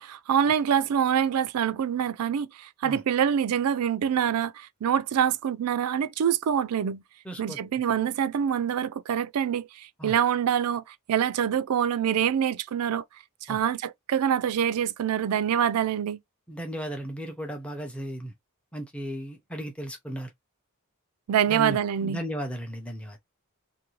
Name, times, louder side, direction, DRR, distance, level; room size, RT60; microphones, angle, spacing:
voice 1, 0.0-7.0 7.4-13.0 13.4-16.2 21.3-22.2, right 8 dB, 85° right, 0.4 m, -25 dB
voice 2, 7.3-7.6 10.0-10.2 13.5-13.6 16.5-18.3 18.7-20.3 21.5-23.2, equal, 5° left, 0.6 m, -35 dB
2.6 x 2.6 x 3.1 m
head